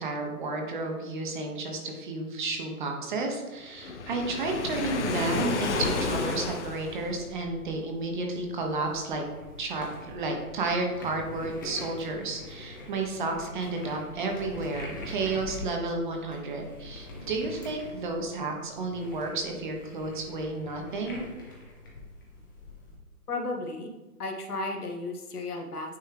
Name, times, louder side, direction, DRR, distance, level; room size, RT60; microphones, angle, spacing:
voice 1, 0.0-9.2 9.6-21.3, right 3 dB, 30° right, 2 dB, 0.9 m, -32 dB
Waves surf, 3.8-7.3, left 4 dB, 50° left, 0.8 m, -31 dB
sound 1, 5.3-23.0, left 2 dB, 15° left, 0.6 m, -45 dB
voice 2, 23.3-23.9 24.2-26.0, left 2 dB, 75° left, 2 dB, 1.3 m, -34 dB
9.2 x 3.3 x 3.3 m, 1.2 s
hypercardioid pair, 145°, 46 cm